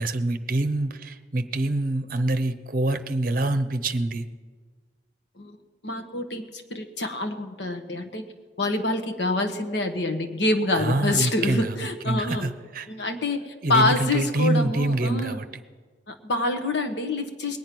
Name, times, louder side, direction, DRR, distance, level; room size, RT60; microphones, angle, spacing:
voice 1, 0.0-4.2 10.8-12.9 13.6-15.5, right 2 dB, 50° right, 10 dB, 0.8 m, -26 dB
voice 2, 5.8-8.2 8.6-12.5 12.9-13.4 13.7-15.4 16.1-17.6, left 2 dB, 70° left, 6 dB, 1.2 m, -26 dB
21.0 x 8.6 x 6.1 m, 1.5 s
head